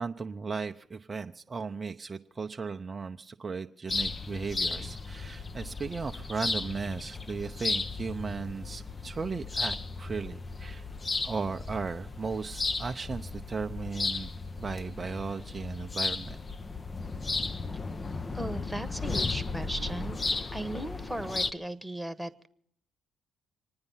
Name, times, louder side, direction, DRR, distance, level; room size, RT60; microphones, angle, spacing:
voice 1, 0.0-10.9 11.2-14.3 14.6-16.4, right 4 dB, 35° right, 5 dB, 0.7 m, -36 dB
sound 1, 3.9-21.5, left 3 dB, 30° left, 0.8 m, -35 dB
voice 2, 18.3-20.2 20.5-22.5, right 1 dB, ahead, 10 dB, 1.3 m, -37 dB
26.5 x 9.7 x 5.6 m, 0.69 s
hypercardioid pair, 50°, 0 cm